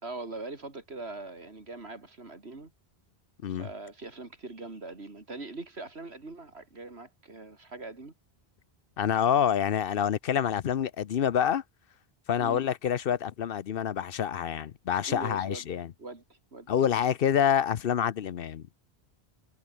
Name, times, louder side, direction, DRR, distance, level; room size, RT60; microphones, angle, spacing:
voice 1, 0.0-2.7 3.5-8.1 12.4-12.6 15.1-15.7 16.0-16.7, right 3 dB, 80° right, 3.5 m, -42 dB
voice 2, 9.0-11.6 12.3-15.9 16.7-18.6, left 9 dB, 65° left, 0.9 m, -27 dB
omnidirectional pair, 1.1 m